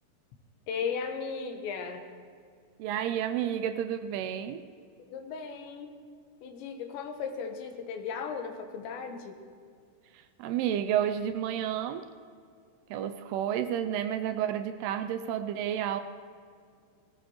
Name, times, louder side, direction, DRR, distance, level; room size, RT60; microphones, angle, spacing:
voice 1, 0.7-2.0 5.1-6.0 6.4-9.4, left 6 dB, 90° left, 5 dB, 3.4 m, -36 dB
voice 2, 2.8-4.6 10.1-12.0 12.9-16.0, right 10 dB, 80° right, 9 dB, 2.4 m, -31 dB
18.5 x 18.0 x 3.1 m, 2.2 s
omnidirectional pair, 4.9 m